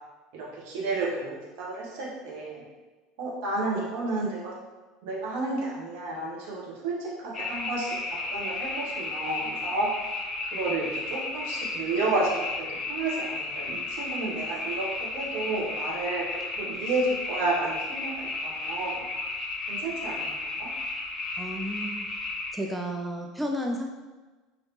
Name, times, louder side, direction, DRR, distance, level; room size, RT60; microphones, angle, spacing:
voice 1, 0.3-1.2 1.6-2.6 3.2-4.5 5.0-7.9 8.3-9.9 10.5-16.2 16.6-19.0 19.7-20.7, right 2 dB, 65° right, -4 dB, 0.9 m, -31 dB
sound 1, 7.3-22.5, left 3 dB, 30° left, 1.0 m, -33 dB
voice 2, 21.4-22.1 22.5-23.9, equal, 5° right, 1 dB, 0.3 m, -32 dB
3.3 x 2.8 x 2.7 m, 1.2 s
figure-of-eight pair, 70°, 0 cm